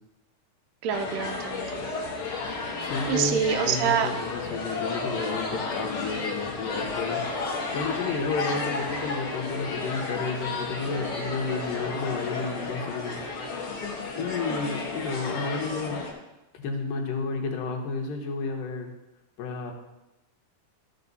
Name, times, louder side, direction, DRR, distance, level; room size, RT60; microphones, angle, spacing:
voice 1, 0.8-1.9 3.1-4.1 14.5-14.9, right 8 dB, 80° right, 5 dB, 1.6 m, -27 dB
sound 1, 0.9-16.1, left 3 dB, 55° left, 1.6 m, -32 dB
voice 2, 2.8-7.4 7.7-13.2 14.2-16.0 16.5-18.9 19.4-19.7, left 4 dB, 80° left, 3 dB, 2.7 m, -31 dB
13.5 x 5.4 x 4.0 m, 0.98 s
omnidirectional pair, 3.8 m